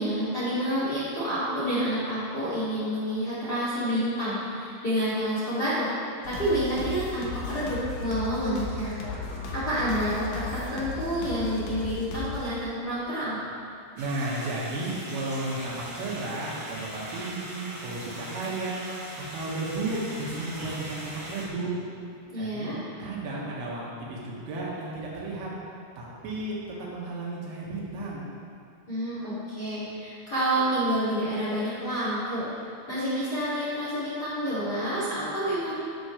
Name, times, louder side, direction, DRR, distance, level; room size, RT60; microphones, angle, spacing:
voice 1, 0.0-9.0 9.5-13.4 22.3-22.8 28.9-35.7, equal, 25° left, -10 dB, 2.4 m, -29 dB
sound 1, 6.2-12.5, left 4 dB, 75° left, 2.0 m, -35 dB
sound 2, 14.0-21.5, right 1 dB, 30° right, 2.6 m, -40 dB
voice 2, 14.0-21.7 22.3-25.5 26.0-28.3, right 2 dB, 75° right, -5 dB, 4.3 m, -33 dB
12.5 x 11.5 x 3.3 m, 2.5 s
omnidirectional pair, 5.9 m